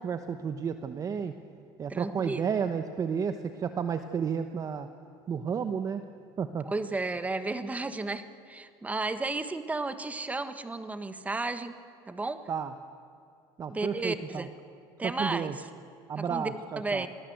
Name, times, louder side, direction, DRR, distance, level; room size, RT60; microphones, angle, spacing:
voice 1, 0.0-1.3 1.8-4.9 5.3-6.1 6.4-6.7 12.5-12.7 13.6-14.5 15.0-15.6 16.1-17.1, right 7 dB, 35° right, 9 dB, 1.0 m, -32 dB
voice 2, 1.9-2.5 6.6-11.7 12.1-12.4 13.7-14.5 15.0-15.7 16.2-17.1, right 3 dB, 15° right, 11 dB, 1.3 m, -33 dB
27.0 x 19.0 x 8.0 m, 2.6 s
cardioid pair, 120°, 11 cm